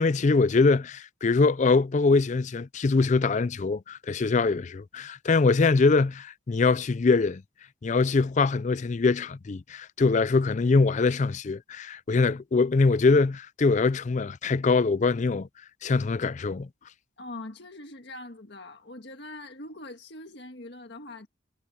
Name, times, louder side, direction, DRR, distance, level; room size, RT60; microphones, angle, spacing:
voice 1, 0.0-7.4 7.8-15.5 15.8-16.7, left 4 dB, 40° left, 0.4 m, -23 dB
voice 2, 17.2-21.3, left 2 dB, 60° left, 1.7 m, -42 dB
head